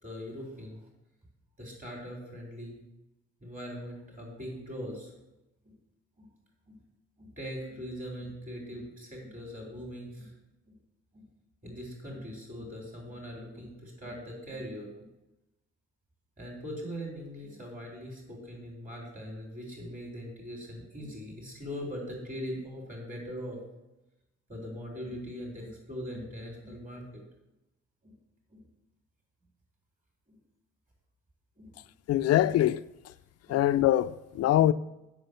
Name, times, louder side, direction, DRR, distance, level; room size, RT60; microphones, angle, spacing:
voice 1, 0.0-0.8 1.6-2.8 3.4-5.1 5.6-5.7 7.2-10.3 11.6-15.1 16.4-23.6 24.5-27.2 28.0-28.1 28.5-28.6 31.6-31.7 33.5-33.6, equal, 25° right, 3.9 m, -41 dB
voice 2, 32.1-32.8 33.5-34.7, left 13 dB, 55° left, 0.4 m, -23 dB
7.6 x 6.3 x 6.8 m
cardioid pair, 90°, 30 cm